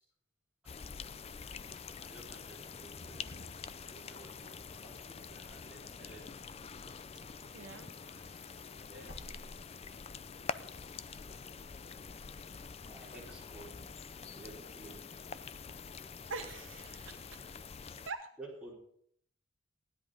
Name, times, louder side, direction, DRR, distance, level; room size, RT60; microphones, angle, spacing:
sound 1, 0.7-18.1, left 5 dB, 30° left, 0.5 m, -46 dB
Wind / Car, 1.6-7.4 7.7-10.2, equal, 60° left, 2.1 m, -56 dB
voice 1, 2.0-6.4 8.2-8.5 8.9-9.2 12.9-13.9 14.3-15.0 18.4-18.7, right 1 dB, 5° right, -5 dB, 4.5 m, -53 dB
voice 2, 7.5-7.9 16.3-17.6 18.1-18.3, right 4 dB, 80° right, 7 dB, 0.9 m, -44 dB
16.0 x 10.5 x 5.2 m, 0.66 s
head